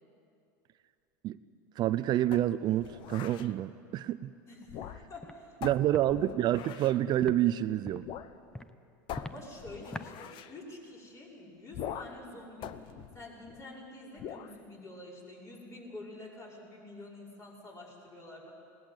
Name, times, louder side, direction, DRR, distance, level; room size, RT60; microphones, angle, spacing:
voice 1, 1.8-4.3 5.6-8.0, right 13 dB, 45° right, 13 dB, 0.5 m, -28 dB
sound 1, 2.3-3.5 4.6-5.2 5.6-7.0 8.0-8.3 8.6-8.7 9.1-10.5 11.7-12.3 12.6-13.7 14.2-14.6, left 10 dB, 50° left, 1.0 m, -43 dB
voice 2, 4.4-5.6 9.1-18.5, left 1 dB, 30° left, -3 dB, 6.1 m, -48 dB
Walk footsteps, 5.2-5.4 5.9-6.0 6.5-6.7 7.2-7.4 7.8-8.1 8.5-8.7 9.1-9.4 9.9-10.1, left 2 dB, 5° left, 0.8 m, -41 dB
20.0 x 18.5 x 8.0 m, 2.5 s
supercardioid pair, 110°, 11 cm